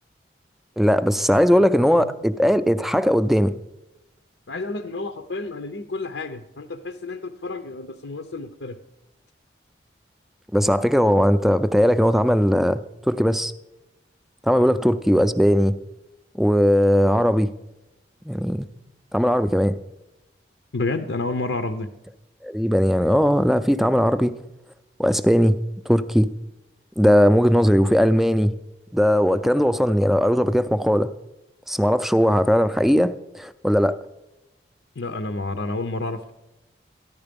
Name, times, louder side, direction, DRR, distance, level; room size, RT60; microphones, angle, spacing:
voice 1, 0.8-3.5 10.5-13.5 14.4-15.8 16.4-17.5 18.3-18.7 19.1-19.8 22.4-24.4 25.0-25.6 25.9-26.3 27.0-28.5 28.9-31.1 31.7-34.0, equal, ahead, 0.4 m, -19 dB
voice 2, 4.5-8.8 20.7-21.9 35.0-36.3, left 3 dB, 90° left, 0.7 m, -30 dB
14.0 x 10.5 x 5.2 m
head